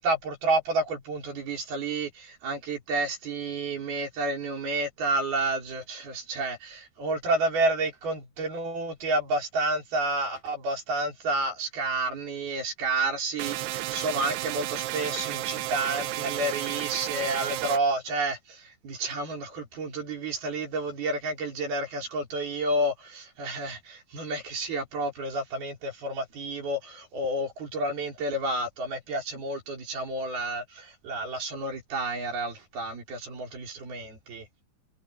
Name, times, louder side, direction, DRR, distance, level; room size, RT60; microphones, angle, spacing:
voice 1, 0.0-34.4, right 2 dB, 65° right, 6.6 m, -30 dB
sound 1, 13.4-17.8, right 16 dB, 80° right, 2.8 m, -32 dB
omnidirectional pair, 4.9 m